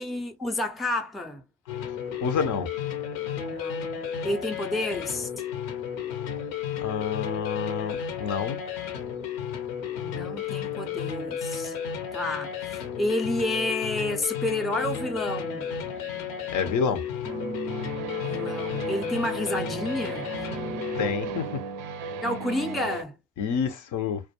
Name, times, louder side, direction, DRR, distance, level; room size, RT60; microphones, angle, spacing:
voice 1, 0.0-1.4 3.5-4.0 4.2-5.3 10.0-11.7 12.1-15.7 18.2-20.3 22.2-23.2, left 1 dB, ahead, 0.5 m, -30 dB
sound 1, 1.7-21.1, left 8 dB, 80° left, 0.8 m, -33 dB
voice 2, 2.2-2.7 6.8-8.6 16.0-16.2 16.5-17.0 21.0-21.6 23.4-24.2, left 6 dB, 50° left, 0.6 m, -28 dB
sound 2, 14.7-23.0, right 5 dB, 70° right, 0.5 m, -37 dB
2.2 x 2.2 x 2.7 m
hypercardioid pair, 55°, 40 cm